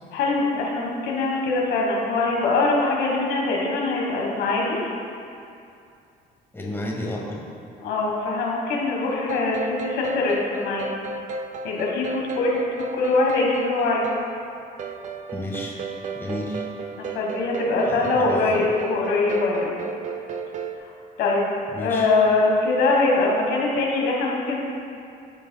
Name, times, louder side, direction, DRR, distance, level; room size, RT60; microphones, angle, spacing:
voice 1, 0.1-4.8 7.8-11.0 11.6-12.5 12.8-14.0 17.1-19.8 21.2-24.6, left 3 dB, 85° left, -2 dB, 1.4 m, -23 dB
voice 2, 6.5-7.4 15.3-15.7 16.1-16.6 17.8-18.6 21.7-22.1, left 1 dB, 15° left, -3 dB, 1.5 m, -31 dB
sound 1, 9.1-20.8, right 3 dB, 45° right, 0.5 m, -34 dB
14.5 x 5.0 x 2.3 m, 2.5 s
cardioid pair, 110°, 17 cm